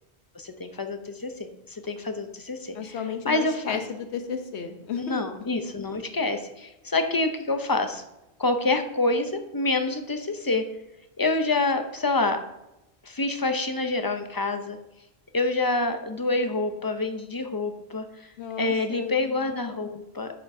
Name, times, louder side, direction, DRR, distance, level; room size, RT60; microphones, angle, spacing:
voice 1, 0.3-1.3 1.7-3.0 3.2-3.8 5.0-8.0 8.4-10.6 11.2-12.4 13.0-14.8 15.3-18.3 18.6-20.4, left 2 dB, 25° left, 7 dB, 0.5 m, -27 dB
voice 2, 2.7-5.2 18.4-19.2, left 6 dB, 85° left, 6 dB, 1.1 m, -33 dB
9.4 x 7.3 x 2.7 m, 0.92 s
omnidirectional pair, 1.1 m